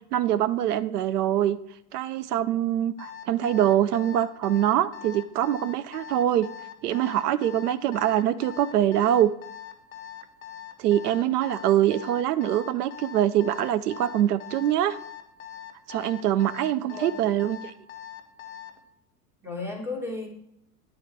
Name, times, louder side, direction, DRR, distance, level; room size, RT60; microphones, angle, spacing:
voice 1, 0.1-1.6 1.9-6.5 6.8-9.3 10.8-15.0 15.9-17.7, right 11 dB, 65° right, 13 dB, 0.6 m, -24 dB
Alarm, 3.0-18.8, left 10 dB, 25° left, 0.7 m, -42 dB
voice 2, 16.8-17.2 19.4-20.3, left 3 dB, 5° right, 1 dB, 1.4 m, -34 dB
9.8 x 4.0 x 4.4 m, 0.78 s
figure-of-eight pair, 85°, 50 cm